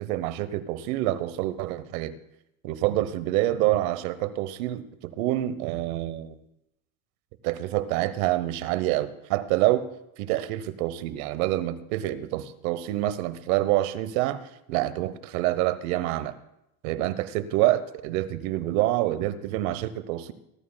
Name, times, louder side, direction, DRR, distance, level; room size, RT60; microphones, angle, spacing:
voice 1, 0.0-2.2 2.6-6.4 7.4-9.9 10.2-14.4 14.7-16.3 16.8-20.3, right 15 dB, 85° right, 14 dB, 1.0 m, -27 dB
23.0 x 13.0 x 2.2 m, 0.84 s
supercardioid pair, 115°, 41 cm